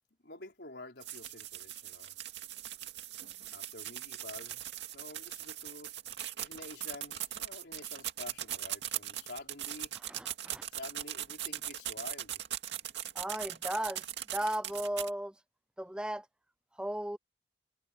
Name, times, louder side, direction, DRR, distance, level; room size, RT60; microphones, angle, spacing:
voice 1, 0.2-2.1 3.5-4.6 4.9-5.9 6.4-9.9 10.7-12.4, left 2 dB, 70° left, 4.0 m, -48 dB
sound 1, 1.0-15.1, right 12 dB, 80° right, 2.2 m, -40 dB
voice 2, 10.0-10.7 13.1-14.1 14.3-15.4 15.8-16.3 16.7-17.2, right 1 dB, 5° right, 0.4 m, -36 dB
head